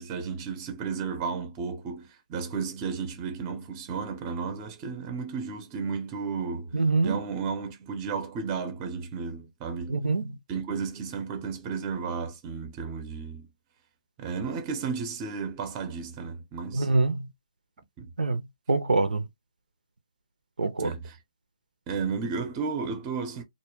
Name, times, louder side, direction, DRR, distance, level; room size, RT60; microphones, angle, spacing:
voice 1, 0.0-10.0 10.5-13.5 14.2-16.9 18.0-18.1 20.8-21.2 21.9-23.4, right 5 dB, 20° right, 0.6 m, -33 dB
voice 2, 6.7-7.2 9.9-10.3 16.7-17.3 18.2-18.4 18.7-19.2 20.6-20.9, right 3 dB, 85° right, 0.5 m, -24 dB
2.2 x 2.1 x 3.1 m
hypercardioid pair, 145°, 4 cm